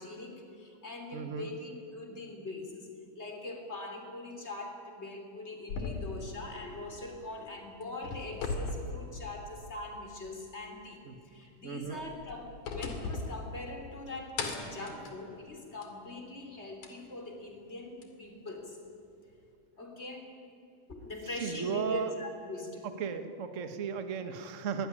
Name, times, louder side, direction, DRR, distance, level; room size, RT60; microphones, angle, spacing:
voice 1, 0.0-2.9 3.2-18.8 19.8-20.3 20.9-22.9, left 2 dB, 20° left, 3 dB, 3.7 m, -42 dB
voice 2, 1.1-1.5 11.0-11.1 11.6-12.0 21.4-22.1 23.0-24.9, right 6 dB, 40° right, 8 dB, 1.2 m, -35 dB
sound 1, 5.7-7.5 7.8-9.8 10.2-10.3 11.9-14.0 14.4-16.0 16.8-16.9 18.0-18.1, left 3 dB, 85° left, 3.8 m, -39 dB
23.0 x 18.5 x 10.0 m, 2.6 s
omnidirectional pair, 3.5 m